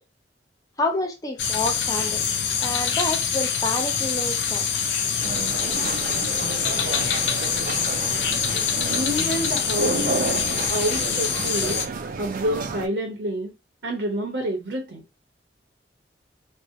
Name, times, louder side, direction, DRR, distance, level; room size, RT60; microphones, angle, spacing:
voice 1, 0.8-2.3 2.6-4.7, left 2 dB, 20° left, 0.4 m, -28 dB
sound 1, 1.4-11.9, left 7 dB, 75° left, 0.4 m, -25 dB
sound 2, 5.2-12.9, right 4 dB, 50° right, 0.3 m, -31 dB
voice 2, 8.8-10.4 10.7-11.8 12.2-13.5 13.8-15.0, equal, 80° right, 0.6 m, -28 dB
2.6 x 2.0 x 2.5 m
head